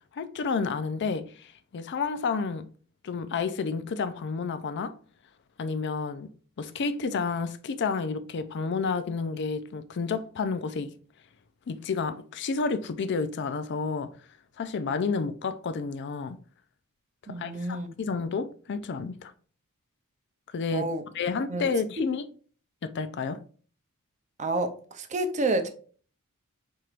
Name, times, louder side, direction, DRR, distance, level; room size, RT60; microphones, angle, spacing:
voice 1, 0.1-2.7 3.0-4.9 5.6-6.3 6.6-10.9 11.7-14.1 14.6-16.4 17.3-19.3 20.5-20.9 21.1-22.3 22.8-23.4, left 4 dB, 55° left, 0.4 m, -30 dB
voice 2, 17.3-17.9 20.7-21.0 21.5-21.7 24.4-25.7, right 2 dB, 35° right, 0.6 m, -29 dB
4.6 x 4.5 x 2.4 m
head